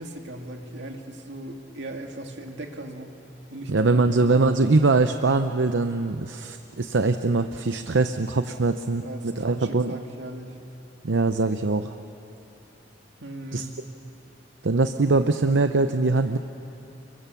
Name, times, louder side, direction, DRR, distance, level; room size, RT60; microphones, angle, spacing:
voice 1, 0.0-3.2 3.5-3.8 4.3-4.5 8.4-8.7 9.0-10.6 13.2-13.7, right 1 dB, 70° right, 3 dB, 2.4 m, -38 dB
voice 2, 3.7-10.0 11.0-11.9 13.5-13.6 14.6-16.4, right 3 dB, 90° right, 8 dB, 0.7 m, -22 dB
30.0 x 23.0 x 7.0 m, 2.8 s
head